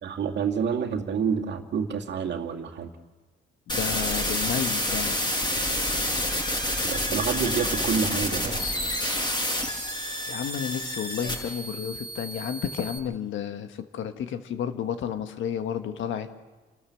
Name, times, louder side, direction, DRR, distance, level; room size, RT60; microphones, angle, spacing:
voice 1, 0.0-2.9 6.8-8.5, right 6 dB, 60° right, 3 dB, 2.2 m, -28 dB
voice 2, 3.7-5.2 10.3-16.5, left 8 dB, 75° left, 8 dB, 1.5 m, -32 dB
sound 1, 3.7-13.0, left 1 dB, 20° left, 6.0 m, -28 dB
29.5 x 13.0 x 7.1 m, 1.3 s
cardioid pair, 90°, 20 cm